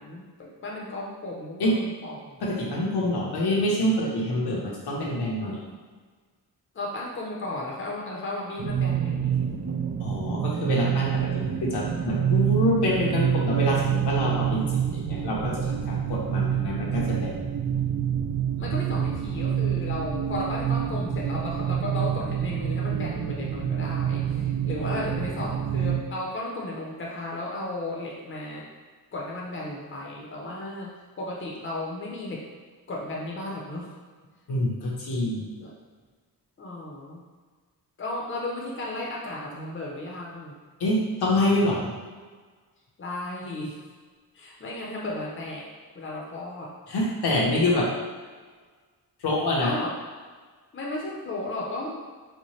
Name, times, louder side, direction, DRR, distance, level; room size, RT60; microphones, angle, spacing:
voice 1, 0.0-2.6 6.7-9.5 18.6-28.7 29.1-32.4 32.9-33.9 35.6-35.7 36.6-37.2 38.0-40.6 43.0-43.8 44.3-45.7 45.9-46.7 49.6-50.0 50.7-51.9, left 2 dB, 30° left, -3 dB, 0.7 m, -34 dB
voice 2, 2.4-5.6 10.0-11.3 11.6-17.4 34.5-35.4 40.8-41.9 46.9-47.9 49.2-49.7, left 1 dB, 80° left, -4 dB, 0.9 m, -26 dB
sound 1, 8.6-26.0, right 9 dB, 35° right, 0.4 m, -27 dB
4.2 x 2.2 x 3.1 m, 1.5 s
wide cardioid pair, 105°, 39 cm